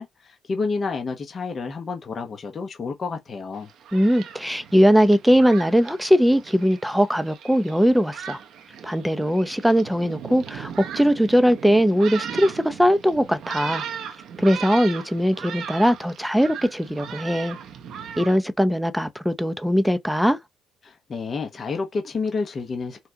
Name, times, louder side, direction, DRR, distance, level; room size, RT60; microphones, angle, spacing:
voice 1, 0.0-3.7 20.8-23.1, left 4 dB, 40° left, 1.0 m, -30 dB
Thunderstorm, 3.6-18.4, right 8 dB, 75° right, 0.8 m, -38 dB
voice 2, 3.9-8.4 8.8-13.8 14.4-17.6 18.2-20.4, equal, ahead, 0.7 m, -20 dB
5.7 x 2.4 x 2.9 m
cardioid pair, 90°, 0 cm